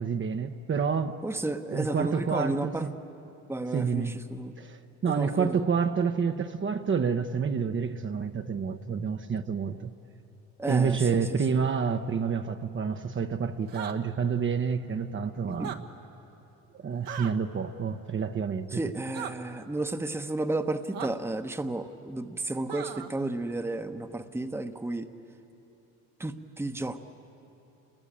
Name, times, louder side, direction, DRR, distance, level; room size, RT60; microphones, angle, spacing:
voice 1, 0.0-1.2 1.7-2.9 3.7-4.2 4.6-9.9 10.7-15.8 16.7-18.8, right 6 dB, 35° right, 1.0 m, -28 dB
voice 2, 1.2-2.9 3.5-4.5 5.1-5.6 10.6-11.2 11.5-11.6 15.5-15.8 18.7-25.1 26.2-27.0, right 2 dB, 5° right, 1.1 m, -32 dB
sound 1, 13.7-14.0 15.5-15.8 17.1-17.3 19.1-19.3 20.9-21.1 22.7-23.1, right 9 dB, 70° right, 1.5 m, -37 dB
28.5 x 21.0 x 8.9 m
supercardioid pair, 90°, 36 cm